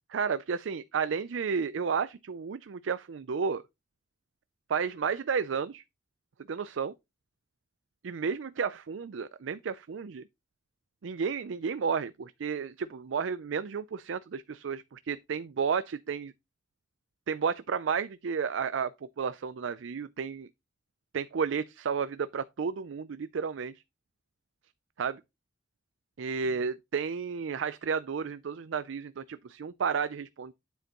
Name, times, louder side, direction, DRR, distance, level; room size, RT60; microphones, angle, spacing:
voice 1, 0.1-3.6 4.7-5.8 6.5-6.9 8.0-10.2 11.0-16.3 17.3-20.5 21.1-23.7 25.0-25.2 26.2-30.5, right 6 dB, 85° right, 0.4 m, -32 dB
9.2 x 7.9 x 3.0 m
head